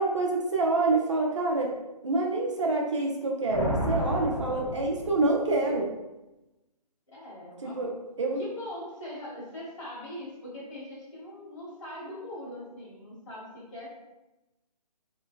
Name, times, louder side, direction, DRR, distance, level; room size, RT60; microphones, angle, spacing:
voice 1, 0.0-1.7 2.0-5.9 7.6-7.9 8.2-8.4, right 2 dB, 45° right, -1 dB, 0.4 m, -27 dB
Thunder, 3.5-5.7, equal, 30° left, 0.8 m, -32 dB
voice 2, 7.1-7.9 8.4-14.0, left 1 dB, 50° left, -7 dB, 1.2 m, -41 dB
2.5 x 2.2 x 2.2 m, 0.99 s
figure-of-eight pair, 145°, 21 cm